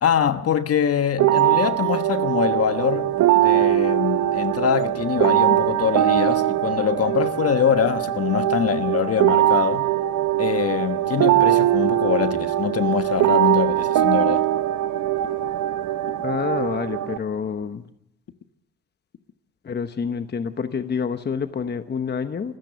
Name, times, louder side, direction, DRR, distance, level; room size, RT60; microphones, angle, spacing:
voice 1, 0.0-9.9 10.4-14.5, left 8 dB, 50° left, 1.3 m, -23 dB
sound 1, 1.2-17.2, right 13 dB, 70° right, 1.0 m, -21 dB
voice 2, 16.2-17.9 19.6-22.6, left 6 dB, 35° left, 1.0 m, -27 dB
26.5 x 14.5 x 6.8 m
cardioid pair, 90°, 30 cm